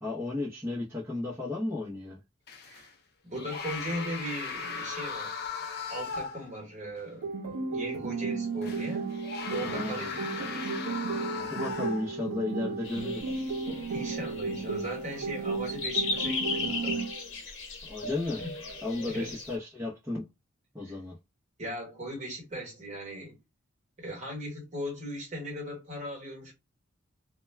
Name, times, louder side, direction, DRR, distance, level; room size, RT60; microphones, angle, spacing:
voice 1, 0.0-2.2 9.6-10.1 11.3-13.4 17.8-18.4 18.8-20.3 20.7-21.2, left 2 dB, 10° right, 0.6 m, -34 dB
sound 1, 2.5-2.9 3.3-6.6 7.0-7.1 8.6-12.3 13.0-13.2, left 5 dB, 50° left, 0.5 m, -38 dB
voice 2, 3.2-5.3 5.9-7.3 7.7-9.1 9.5-10.7 13.9-17.0 18.4-18.5 19.1-19.4 21.6-23.4 24.0-26.5, equal, 35° right, 1.2 m, -38 dB
sound 2, 7.2-17.2, right 4 dB, 80° right, 0.5 m, -34 dB
sound 3, 12.8-19.5, left 4 dB, 65° left, 0.9 m, -36 dB
2.2 x 2.1 x 3.2 m
head